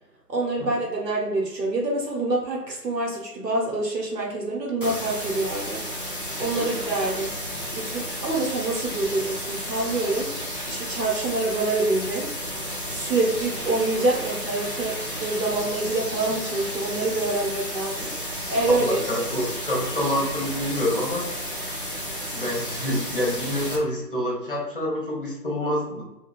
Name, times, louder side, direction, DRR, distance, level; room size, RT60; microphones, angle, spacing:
voice 1, 0.3-5.8 6.4-7.3 7.7-12.3 12.9-18.1 18.5-19.0, right 2 dB, 80° right, -1 dB, 1.1 m, -26 dB
sound 1, 4.8-23.8, equal, 35° right, 0.4 m, -32 dB
voice 2, 18.7-21.3 22.3-26.0, left 1 dB, 35° left, -3 dB, 0.7 m, -27 dB
3.5 x 2.3 x 2.2 m, 0.94 s
figure-of-eight pair, 145°, 49 cm